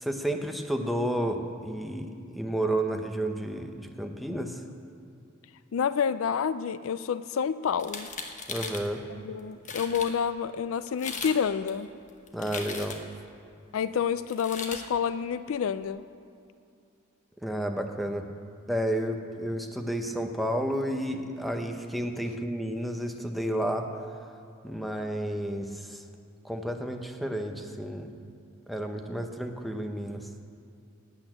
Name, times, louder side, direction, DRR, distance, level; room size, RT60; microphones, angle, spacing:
voice 1, 0.0-4.6 8.5-9.0 12.3-12.9 17.4-18.2 18.7-23.9 24.6-26.0 26.4-28.1 28.7-30.2, right 1 dB, ahead, 4 dB, 0.9 m, -31 dB
voice 2, 5.7-8.1 9.1-11.9 13.7-16.0, left 7 dB, 65° left, 14 dB, 0.4 m, -29 dB
sound 1, 7.7-8.9 9.4-9.5 9.6-10.1 10.9-11.4 11.7-13.2 14.3-14.8, left 4 dB, 35° left, 1.1 m, -38 dB
12.5 x 8.7 x 8.8 m, 2.5 s
head